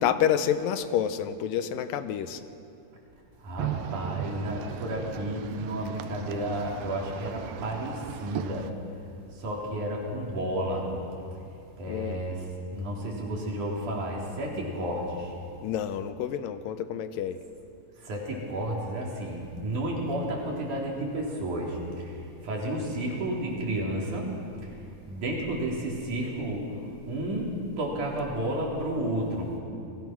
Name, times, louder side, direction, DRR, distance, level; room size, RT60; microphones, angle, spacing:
voice 1, 0.0-2.4 11.9-12.2 15.6-17.4, left 9 dB, 85° left, 10 dB, 2.6 m, -28 dB
voice 2, 3.4-8.7 9.3-10.9 11.8-12.5 12.7-15.3 18.0-29.5, right 1 dB, 65° right, -2 dB, 5.2 m, -32 dB
sound 1, 3.6-8.7, right 10 dB, 90° right, 2.6 m, -37 dB
29.0 x 20.5 x 6.1 m, 2.6 s
omnidirectional pair, 3.9 m